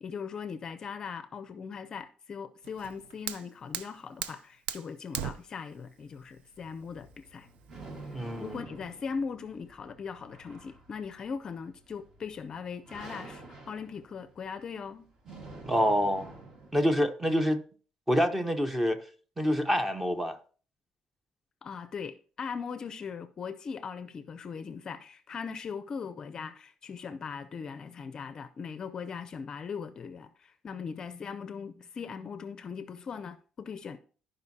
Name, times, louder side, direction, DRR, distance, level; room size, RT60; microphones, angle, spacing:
voice 1, 0.0-7.5 8.4-15.1 21.6-34.0, left 6 dB, 35° left, 0.5 m, -39 dB
Fire, 2.6-8.6, right 9 dB, 85° right, 0.5 m, -41 dB
sound 1, 6.6-17.0, right 2 dB, 35° right, 1.8 m, -49 dB
voice 2, 8.1-8.6 15.6-16.3 16.7-17.6 18.1-19.0 19.4-20.4, equal, 10° right, 0.8 m, -26 dB
15.0 x 5.2 x 2.8 m
cardioid pair, 150°, 2 cm